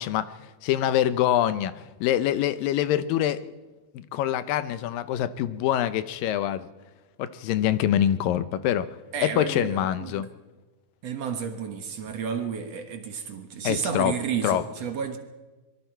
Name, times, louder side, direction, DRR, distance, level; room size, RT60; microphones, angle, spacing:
voice 1, 0.0-3.4 3.9-6.7 7.2-8.9 9.2-10.3 13.6-14.1 14.4-14.6, left 11 dB, 85° left, 2.6 m, -25 dB
voice 2, 9.1-10.3 11.0-15.2, right 7 dB, 60° right, 2.1 m, -31 dB
25.0 x 22.5 x 4.6 m
omnidirectional pair, 3.9 m